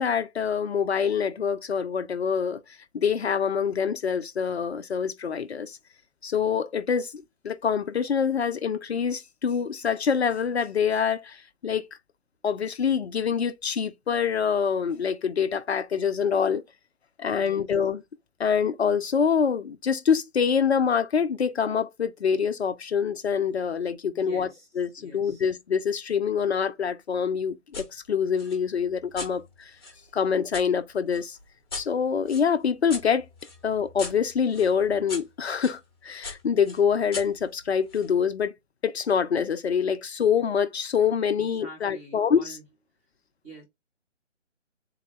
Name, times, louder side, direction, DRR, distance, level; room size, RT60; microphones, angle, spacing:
voice 1, 0.0-2.6 2.9-5.8 6.2-11.9 12.4-16.6 17.2-18.0 18.4-24.5 24.8-29.7 30.1-31.4 31.7-33.3 33.6-38.5 38.8-42.6, left 7 dB, 60° left, 0.5 m, -25 dB
voice 2, 17.4-17.7 24.1-24.7 25.0-25.4 41.4-42.6 43.4-43.6, right 2 dB, 10° right, 0.7 m, -45 dB
sound 1, 27.7-27.9 28.4-30.7 31.1-35.8 36.2-38.1, left 4 dB, 20° left, 0.8 m, -41 dB
3.7 x 2.1 x 3.0 m
figure-of-eight pair, 155°, 37 cm